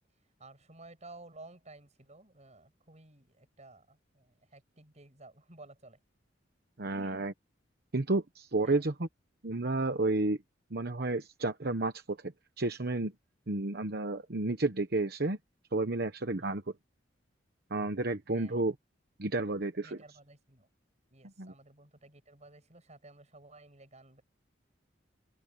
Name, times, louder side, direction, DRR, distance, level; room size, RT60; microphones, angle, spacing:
voice 1, 0.4-6.0 6.9-7.3 8.6-8.8 16.4-16.6 18.3-18.5 19.8-20.7 21.1-24.2, right 2 dB, 40° right, 7.6 m, -54 dB
voice 2, 6.8-7.3 7.9-9.1 9.4-10.4 10.7-12.2 12.6-13.1 13.5-15.4 15.7-16.6 17.7-18.7 19.2-20.0 21.4-21.5, right 2 dB, 55° right, 1.1 m, -31 dB
open air
head